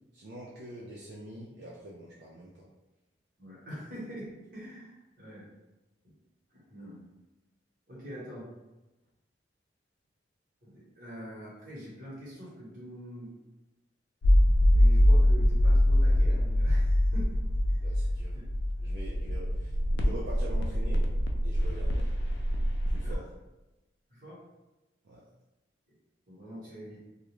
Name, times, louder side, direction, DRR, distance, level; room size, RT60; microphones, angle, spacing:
voice 1, 0.1-2.6 17.8-18.3 18.8-21.0 21.4-22.1 22.9-23.3 25.0-25.2, right 1 dB, 60° right, -4 dB, 0.4 m, -44 dB
voice 2, 3.4-5.5 6.0-6.1 6.5-7.0 7.9-8.5 10.6-13.3 14.7-17.4 17.7-17.8 18.3-18.5 23.0-23.2 24.1-24.4 26.3-27.0, equal, 45° right, -7 dB, 1.0 m, -44 dB
sound 1, 14.2-23.1, left 1 dB, 65° left, 0.3 m, -24 dB
2.4 x 2.1 x 2.9 m, 1.0 s
head